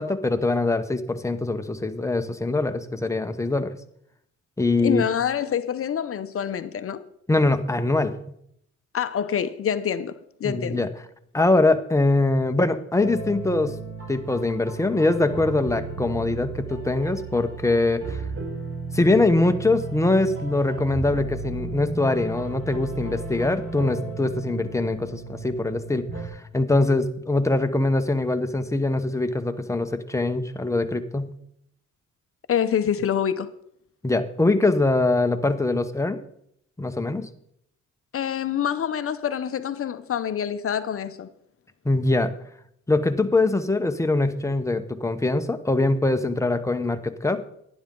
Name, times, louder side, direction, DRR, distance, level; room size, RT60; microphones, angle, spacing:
voice 1, 0.0-3.7 4.6-5.1 7.3-8.1 10.4-10.9 11.3-13.8 14.1-18.2 18.9-31.3 34.0-36.2 36.8-37.3 41.8-42.3 42.9-47.4, left 2 dB, 10° left, 1.0 m, -23 dB
voice 2, 4.8-7.0 8.9-10.1 10.4-10.9 32.5-33.5 38.1-41.3, left 8 dB, 50° left, 0.7 m, -26 dB
sound 1, 13.0-26.3, right 4 dB, 45° right, 4.7 m, -34 dB
11.5 x 11.0 x 3.8 m
cardioid pair, 90°, 30 cm